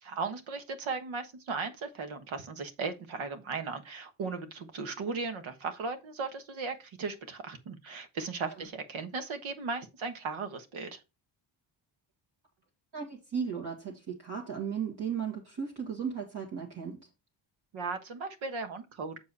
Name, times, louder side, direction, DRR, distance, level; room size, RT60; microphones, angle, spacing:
voice 1, 0.0-11.0 17.7-19.2, right 4 dB, 70° right, 1.4 m, -37 dB
voice 2, 12.9-17.1, right 7 dB, 55° right, 2.1 m, -35 dB
7.0 x 4.7 x 4.1 m
cardioid pair, 80°, 49 cm